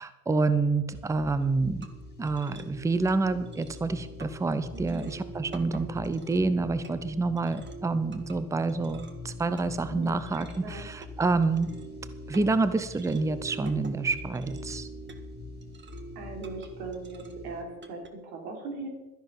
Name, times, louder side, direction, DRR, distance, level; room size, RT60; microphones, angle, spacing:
voice 1, 0.0-1.9 2.2-11.7 12.3-14.9, right 3 dB, 5° right, 13 dB, 0.7 m, -28 dB
sound 1, 0.9-17.6, left 4 dB, 20° left, 3.6 m, -45 dB
sound 2, 1.4-18.1, right 4 dB, 25° right, 1.6 m, -46 dB
voice 2, 4.7-5.1 9.9-10.9 16.2-18.9, right 3 dB, 75° right, 3 dB, 3.7 m, -39 dB
13.0 x 10.5 x 5.8 m, 1.1 s
hypercardioid pair, 95°, 46 cm